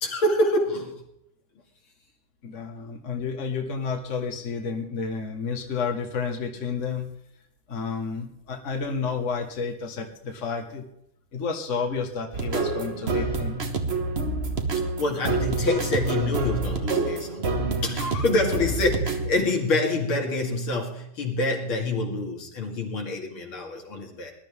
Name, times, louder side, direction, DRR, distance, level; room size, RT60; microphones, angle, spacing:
voice 1, 0.0-1.0 15.0-17.5 17.8-24.3, left 2 dB, 70° left, 1 dB, 3.1 m, -26 dB
voice 2, 2.4-7.1 7.7-10.9 11.3-13.6, left 5 dB, 35° left, 3 dB, 1.8 m, -31 dB
sound 1, 12.3-19.3, right 3 dB, 35° right, 1.3 m, -27 dB
20.5 x 12.0 x 3.6 m, 0.77 s
omnidirectional pair, 2.4 m